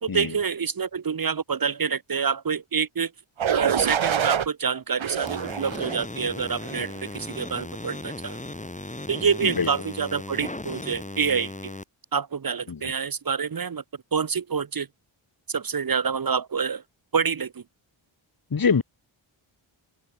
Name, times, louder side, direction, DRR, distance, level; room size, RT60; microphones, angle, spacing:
voice 1, 0.0-3.1 3.5-8.4 9.1-11.7 12.1-13.8 14.1-14.9 15.5-16.8 17.1-17.6, right 6 dB, 45° right, 1.1 m, -27 dB
sound 1, 3.4-4.5 5.0-6.0 6.6-7.0, right 8 dB, 70° right, 1.5 m, -26 dB
sound 2, 5.3-11.8, left 2 dB, 15° left, 3.7 m, -37 dB
voice 2, 18.5-18.8, left 5 dB, 45° left, 1.8 m, -24 dB
open air
wide cardioid pair, 100°, 49 cm